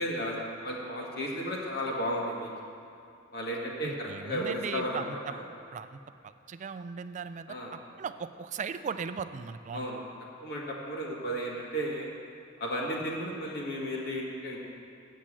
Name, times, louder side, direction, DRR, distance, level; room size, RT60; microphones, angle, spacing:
voice 1, 0.0-2.5 3.3-5.4 7.5-7.7 9.7-10.0 10.4-12.1 12.6-14.6, equal, 55° left, -3 dB, 1.9 m, -34 dB
voice 2, 3.8-5.3 5.7-7.5 8.0-9.9, right 6 dB, 40° right, 11 dB, 0.3 m, -38 dB
8.3 x 7.4 x 7.4 m, 2.5 s
head